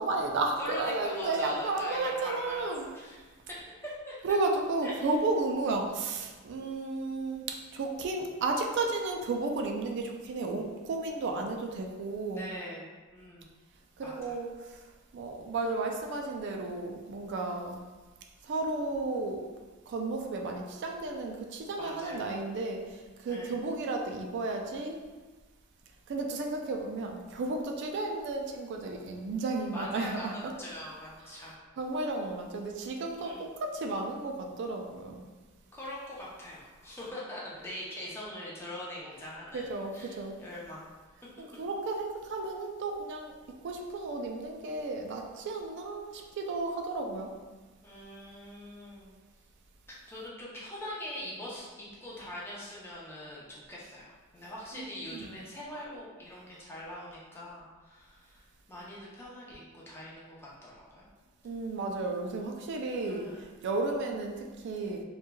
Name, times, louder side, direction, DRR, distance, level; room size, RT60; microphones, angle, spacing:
voice 1, 0.0-2.9 4.2-12.5 14.0-14.8 15.1-17.8 18.4-19.4 19.9-25.0 26.1-30.6 31.2-35.2 39.5-40.4 41.4-43.3 43.6-47.3 54.7-55.4 61.4-65.0, right 3 dB, 60° right, 2 dB, 0.3 m, -33 dB
voice 2, 0.6-3.3 3.8-4.4 4.8-5.1 12.3-13.5 14.0-14.4 21.8-22.3 23.3-23.6 29.7-31.6 33.2-33.4 35.7-39.6 39.9-40.9 47.8-49.2 49.9-61.1 63.1-63.6, left 1 dB, 10° left, -6 dB, 0.6 m, -42 dB
2.9 x 2.3 x 2.2 m, 1.3 s
head